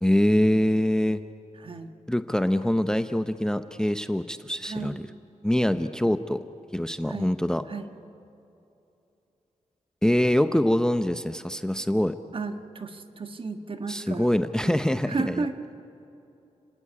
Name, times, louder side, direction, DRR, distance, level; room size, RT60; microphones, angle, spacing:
voice 1, 0.0-1.2 2.1-4.9 5.4-6.4 6.7-7.6 10.0-12.1 13.9-15.5, left 1 dB, 5° left, 10 dB, 0.6 m, -24 dB
voice 2, 4.6-5.0 7.1-7.3 7.7-7.9 12.3-14.3 14.6-14.8 15.1-15.5, right 4 dB, 45° right, 7 dB, 1.4 m, -33 dB
30.0 x 17.0 x 9.9 m, 2.8 s
wide cardioid pair, 110°, 12 cm